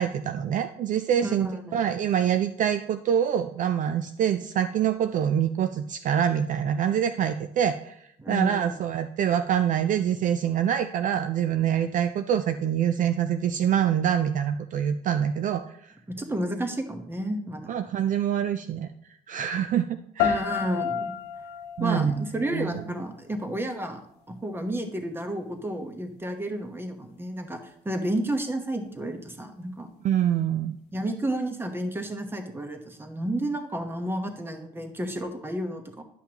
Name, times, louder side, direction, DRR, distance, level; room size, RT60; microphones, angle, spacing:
voice 1, 0.0-15.8 17.7-18.9 19.3-20.4 21.8-22.2 22.5-22.8 30.0-30.8, right 9 dB, 50° right, 9 dB, 0.4 m, -25 dB
voice 2, 1.2-1.8 8.2-8.7 16.1-17.7 20.2-21.1 21.8-24.0 24.3-29.9 30.9-36.0, right 1 dB, 15° right, 6 dB, 1.0 m, -31 dB
sound 1, 20.2-23.2, left 8 dB, 85° left, 0.5 m, -31 dB
10.5 x 5.7 x 2.9 m, 0.72 s
cardioid pair, 110°, 17 cm